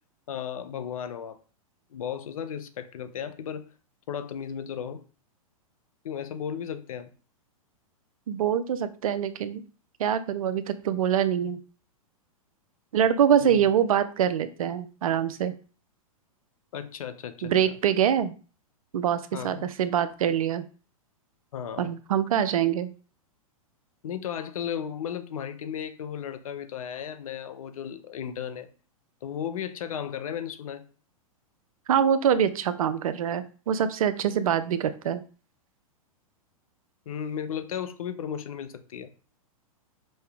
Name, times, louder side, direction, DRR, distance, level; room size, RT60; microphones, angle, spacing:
voice 1, 0.3-1.4 1.9-3.6 4.1-5.0 6.0-7.1 13.4-13.7 16.7-17.7 19.3-19.6 21.5-21.9 24.0-28.7 29.2-30.9 37.1-39.1, left 8 dB, 70° left, 0.7 m, -35 dB
voice 2, 8.3-9.6 10.0-11.6 12.9-15.5 17.4-18.3 18.9-20.7 21.8-22.9 31.9-35.2, right 9 dB, 70° right, 0.6 m, -24 dB
5.4 x 2.8 x 3.5 m
hypercardioid pair, 115°, 18 cm